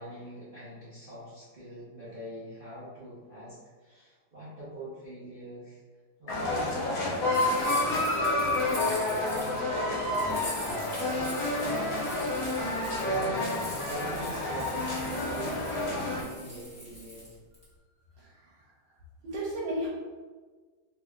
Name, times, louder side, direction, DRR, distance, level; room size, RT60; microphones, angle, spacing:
voice 1, 0.0-5.8 6.2-12.0 13.0-17.3, right 1 dB, 45° right, -12 dB, 0.7 m, -44 dB
sound 1, 6.3-16.2, left 2 dB, 75° left, 1.5 m, -29 dB
sound 2, 7.3-9.6 10.1-17.6, equal, 5° left, 1.1 m, -44 dB
voice 2, 18.2-18.5 19.2-19.9, right 1 dB, 80° right, -5 dB, 1.3 m, -34 dB
3.4 x 3.1 x 2.3 m, 1.4 s
omnidirectional pair, 2.1 m